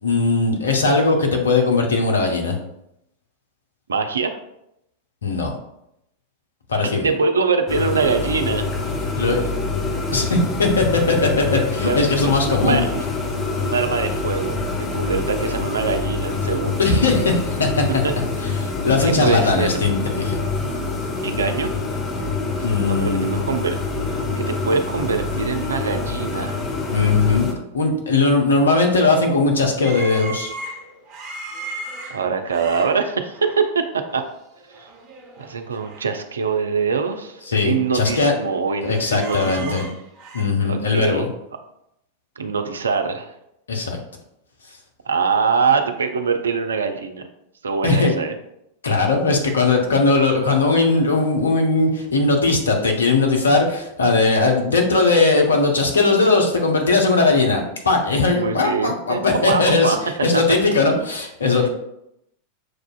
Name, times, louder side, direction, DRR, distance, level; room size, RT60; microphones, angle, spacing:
voice 1, 0.0-2.6 5.2-5.6 6.7-7.1 9.1-9.4 10.1-12.8 16.8-17.8 18.6-20.4 22.6-23.5 26.9-27.5 27.7-30.5 37.5-38.3 38.8-39.9 40.3-41.3 43.7-44.0 47.8-48.1 48.8-60.0 60.2-61.7, left 3 dB, 70° left, 2 dB, 0.7 m, -19 dB
voice 2, 3.9-4.4 6.9-8.7 11.8-12.0 12.6-13.0 13.6-14.6 14.9-16.8 18.0-18.1 19.0-19.7 21.2-21.7 22.6-23.8 24.4-26.6 32.1-33.8 34.1-34.2 34.8-34.9 35.4-39.8 40.7-41.3 42.4-43.3 45.1-47.3 47.6-48.3 58.3-59.2 59.5-60.1, right 5 dB, 70° right, 7 dB, 0.4 m, -23 dB
sound 1, 7.7-27.5, left 3 dB, 25° left, 0.7 m, -26 dB
sound 2, 29.8-33.7 34.1-34.3 34.6-36.1 36.4-36.5 37.1-38.4 38.7-40.4, right 2 dB, 35° right, 1.2 m, -37 dB
6.2 x 2.4 x 2.3 m, 0.80 s
figure-of-eight pair, 90°, 0 cm